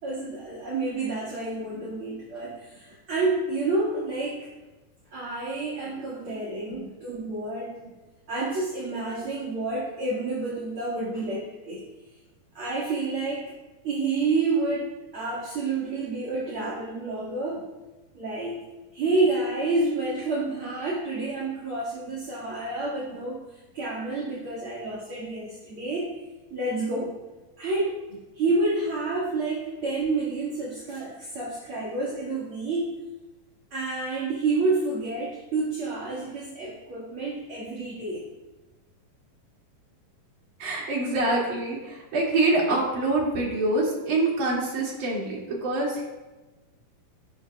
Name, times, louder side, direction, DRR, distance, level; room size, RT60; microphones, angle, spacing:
voice 1, 0.0-4.4 5.1-7.8 8.3-11.8 12.5-13.5 13.8-17.6 18.1-18.6 18.9-26.1 26.5-27.1 27.6-28.0 28.3-32.9 33.7-38.2, right 3 dB, 40° right, -7 dB, 2.7 m, -29 dB
voice 2, 40.6-46.1, right 2 dB, 55° right, -3 dB, 4.0 m, -25 dB
13.0 x 13.0 x 2.5 m, 1.1 s
omnidirectional pair, 4.2 m